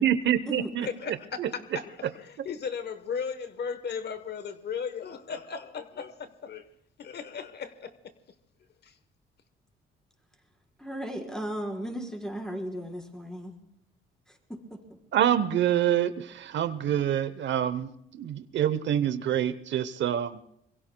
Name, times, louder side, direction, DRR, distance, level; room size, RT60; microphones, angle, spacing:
voice 1, 0.0-1.8 2.4-2.5 15.1-20.4, right 10 dB, 65° right, 0.8 m, -27 dB
voice 2, 0.8-1.9 2.4-6.6 7.0-7.9 8.8-8.9, left 6 dB, 55° left, 1.1 m, -36 dB
voice 3, 10.8-13.5 14.3-14.8, equal, 5° left, 4.4 m, -36 dB
26.0 x 22.5 x 2.2 m
cardioid pair, 90°, 20 cm